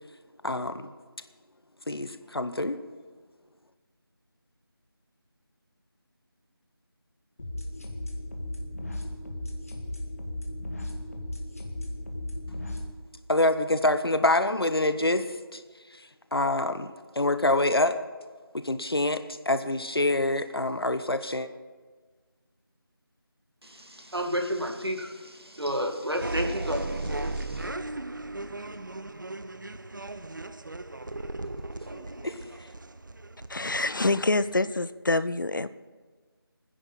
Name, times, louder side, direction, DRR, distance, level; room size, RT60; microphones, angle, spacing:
voice 1, 0.4-0.9 1.9-2.8 13.3-15.6 16.3-18.0 18.5-21.5 31.9-32.4, left 2 dB, 75° left, 11 dB, 1.0 m, -26 dB
sound 1, 7.4-12.9, left 1 dB, 35° left, 1.4 m, -36 dB
voice 2, 23.6-27.7, equal, 85° right, 3 dB, 2.1 m, -32 dB
sound 2, 26.1-34.8, right 2 dB, 55° right, 0.7 m, -36 dB
voice 3, 33.5-35.7, left 2 dB, 55° left, 15 dB, 0.6 m, -26 dB
23.0 x 10.0 x 4.1 m, 1.4 s
figure-of-eight pair, 170°, 13 cm